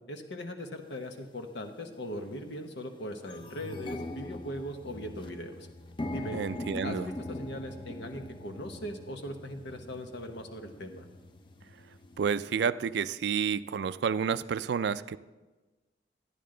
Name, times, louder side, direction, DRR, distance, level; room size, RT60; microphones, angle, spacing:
voice 1, 0.1-5.7 6.1-6.4 6.8-11.0, equal, 75° left, 5 dB, 1.1 m, -39 dB
sound 1, 0.9-1.0 1.8-2.0 2.4-2.5 2.8-12.5, left 1 dB, 30° left, 0.5 m, -42 dB
voice 2, 6.3-7.1 12.2-15.2, right 6 dB, 65° right, 15 dB, 0.3 m, -30 dB
12.5 x 10.0 x 3.8 m, 1.2 s
head